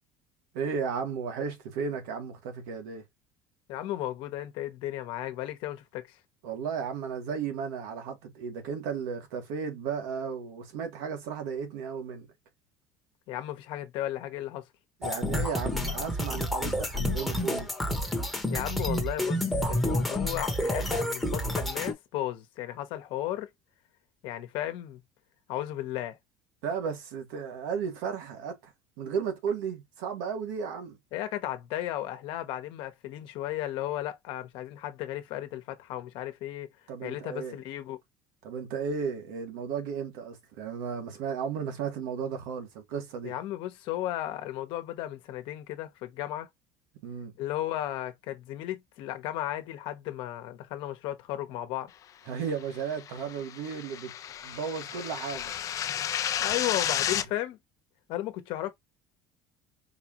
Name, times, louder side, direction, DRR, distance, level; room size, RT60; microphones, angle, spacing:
voice 1, 0.5-3.1 6.4-12.3 15.0-17.7 26.6-31.0 36.9-37.6 38.4-43.4 47.0-47.3 52.3-54.1 54.4-55.5, right 6 dB, 90° right, 1.5 m, -34 dB
voice 2, 3.7-6.1 13.3-14.6 18.5-23.5 24.2-25.0 25.5-26.2 31.1-36.7 37.0-38.0 43.2-46.5 47.4-51.9 56.4-57.6 58.1-58.7, left 13 dB, 65° left, 1.0 m, -34 dB
sound 1, 15.0-21.9, left 1 dB, ahead, 1.0 m, -29 dB
sound 2, 52.8-57.3, left 10 dB, 35° left, 0.5 m, -32 dB
4.6 x 2.4 x 2.9 m
cardioid pair, 150°, 9 cm